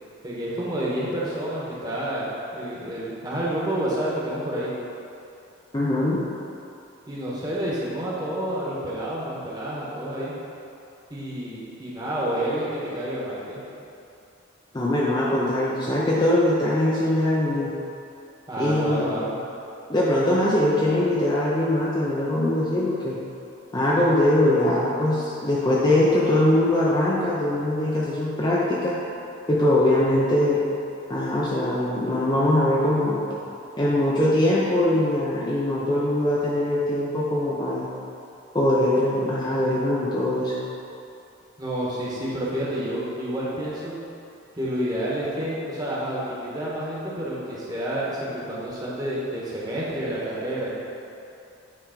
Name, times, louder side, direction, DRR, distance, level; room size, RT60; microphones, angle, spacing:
voice 1, 0.2-4.7 7.1-10.3 11.1-13.6 18.5-19.3 33.2-33.4 41.6-44.0 44.5-50.7, right 1 dB, 20° right, -7 dB, 1.3 m, -29 dB
voice 2, 5.7-6.2 14.7-17.7 18.6-19.2 19.9-23.2 23.7-29.0 29.5-30.6 31.1-33.2 33.8-37.9 38.5-40.6, left 1 dB, 20° left, -6 dB, 0.6 m, -22 dB
8.8 x 3.5 x 5.1 m, 2.7 s
head